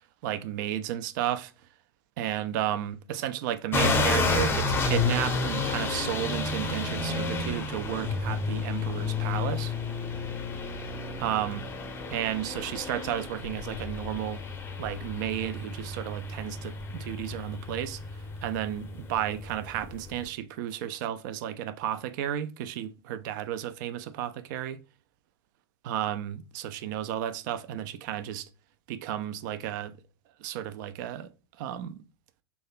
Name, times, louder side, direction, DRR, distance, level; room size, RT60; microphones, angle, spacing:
voice 1, 0.2-1.5 2.2-9.7 11.2-11.6 12.1-14.4 14.8-18.0 18.4-24.8 25.8-28.5 28.9-30.0 30.4-31.3 31.6-32.0, right 11 dB, 50° right, 0.4 m, -33 dB
sound 1, 3.7-20.2, left 3 dB, 15° left, 0.6 m, -31 dB
2.8 x 2.3 x 3.9 m
figure-of-eight pair, 90°, 14 cm